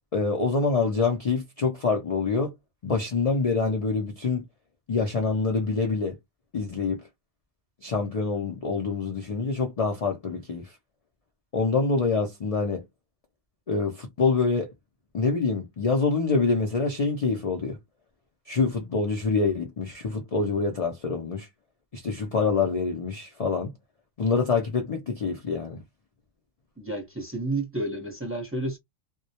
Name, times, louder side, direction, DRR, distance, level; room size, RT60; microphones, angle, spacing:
voice 1, 0.1-2.5 2.8-4.4 4.9-6.2 6.5-7.0 7.8-10.7 11.5-12.8 13.7-14.7 15.1-17.8 18.5-21.5 21.9-23.7 24.2-25.8, left 4 dB, 75° left, 0.3 m, -26 dB
voice 2, 26.8-28.8, right 2 dB, 15° right, 0.6 m, -31 dB
2.2 x 2.1 x 2.7 m
omnidirectional pair, 1.3 m